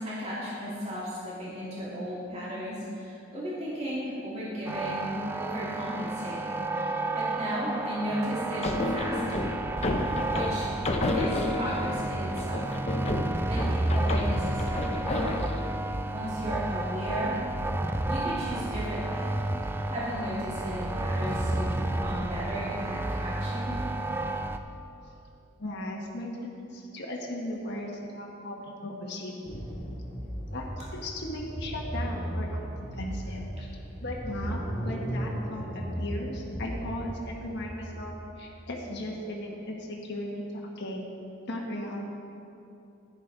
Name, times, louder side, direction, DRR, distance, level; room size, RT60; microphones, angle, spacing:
voice 1, 0.0-9.5 10.3-10.7 11.1-12.6 13.1-13.2 13.5-15.5 16.1-17.4 18.1-19.3 19.9-23.7, equal, 35° right, -8 dB, 2.2 m, -35 dB
sound 1, 4.7-24.6, right 2 dB, 10° right, 0.4 m, -31 dB
sound 2, 8.6-11.9 12.4-15.6, left 2 dB, 35° left, 0.7 m, -31 dB
voice 2, 25.6-29.6 30.5-32.6 32.9-33.7 34.0-40.4 40.8-41.0 41.5-42.0, left 1 dB, 60° left, -2 dB, 1.4 m, -37 dB
sound 3, 29.5-38.8, equal, 15° left, 2.2 m, -36 dB
11.0 x 10.5 x 3.8 m, 2.7 s
head